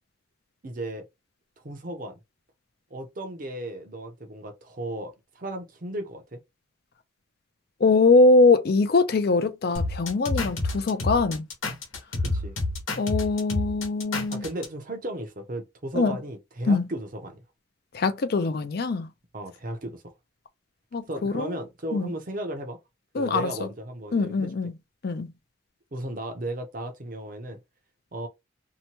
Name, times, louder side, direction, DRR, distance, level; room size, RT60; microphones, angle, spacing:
voice 1, 0.6-1.1 1.6-2.1 2.9-6.4 12.2-12.6 14.3-17.4 19.3-20.1 21.1-22.8 23.2-24.5 25.9-27.6 28.1-28.3, right 1 dB, 45° right, 0.6 m, -35 dB
voice 2, 7.8-11.4 13.0-14.4 15.9-16.2 16.7-16.8 17.9-19.1 20.9-21.5 21.9-22.1 23.1-23.5 24.1-24.7 25.0-25.3, left 3 dB, 50° left, 0.4 m, -22 dB
sound 1, 9.8-14.7, left 2 dB, 80° left, 1.0 m, -28 dB
2.8 x 2.2 x 2.9 m
head